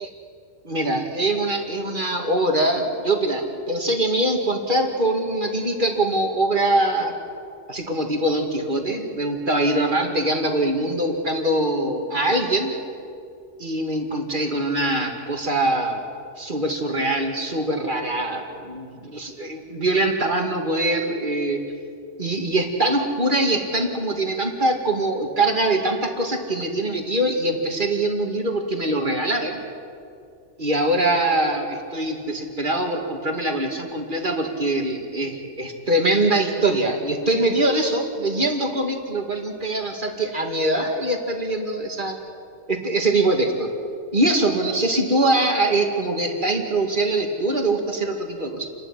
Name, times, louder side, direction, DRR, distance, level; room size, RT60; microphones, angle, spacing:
voice 1, 0.6-7.1 7.7-12.8 13.6-16.0 16.4-21.6 22.2-29.6 30.6-42.2 42.7-43.7 44.1-48.7, right 1 dB, 45° right, 3 dB, 2.5 m, -23 dB
29.0 x 12.5 x 9.9 m, 2.4 s
omnidirectional pair, 1.2 m